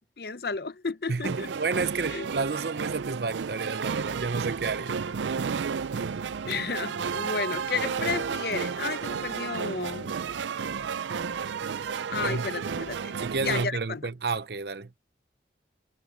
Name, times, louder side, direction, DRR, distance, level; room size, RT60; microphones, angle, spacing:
voice 1, 0.2-1.5 2.1-2.3 6.4-10.2 12.1-14.1, left 5 dB, 60° left, 0.7 m, -32 dB
voice 2, 1.1-5.0 5.2-5.4 12.2-12.5 13.2-14.9, right 4 dB, 65° right, 0.8 m, -31 dB
sound 1, 1.2-13.6, right 6 dB, 85° right, 0.4 m, -32 dB
head